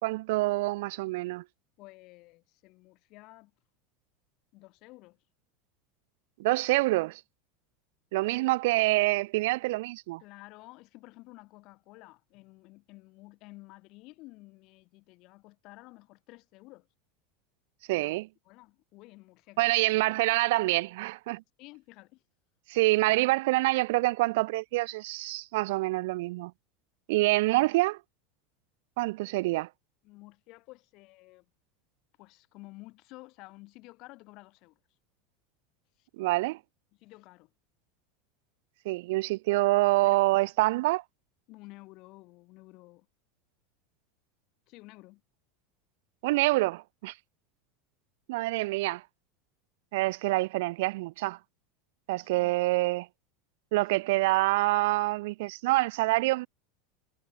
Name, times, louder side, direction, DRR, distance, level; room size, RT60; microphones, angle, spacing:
voice 1, 0.0-1.4 6.4-7.2 8.1-10.2 17.9-18.3 19.6-21.4 22.7-26.5 27.1-28.0 29.0-29.7 36.2-36.6 38.8-41.0 46.2-47.1 48.3-49.0 49.9-51.4 52.1-53.1 53.7-56.5, right 21 dB, 60° right, 1.5 m, -26 dB
voice 2, 1.8-3.5 4.5-5.2 10.2-16.9 17.9-18.2 18.5-19.8 21.6-22.2 30.0-31.5 32.2-34.8 36.0-36.1 37.0-37.5 40.0-40.4 41.5-43.1 44.7-45.2 52.2-52.6 53.9-54.0, left 22 dB, 40° left, 4.7 m, -52 dB
supercardioid pair, 175°, 0 cm